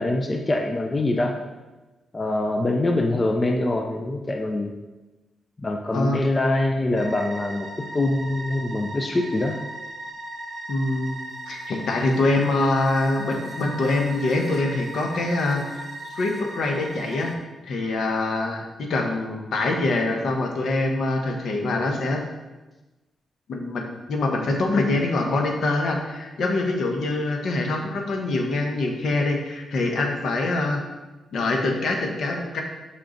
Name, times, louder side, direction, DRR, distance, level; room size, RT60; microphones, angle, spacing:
voice 1, 0.0-1.4 2.1-4.7 5.6-9.6, left 2 dB, 30° left, 3 dB, 0.6 m, -24 dB
voice 2, 5.9-6.2 10.7-15.9 16.1-17.3 17.6-22.2 23.5-30.8 31.3-32.6, left 2 dB, 70° left, 2 dB, 1.0 m, -24 dB
sound 1, 6.9-17.4, right 1 dB, 40° right, 1.2 m, -37 dB
5.6 x 3.9 x 5.0 m, 1.1 s
cardioid pair, 75°, 0 cm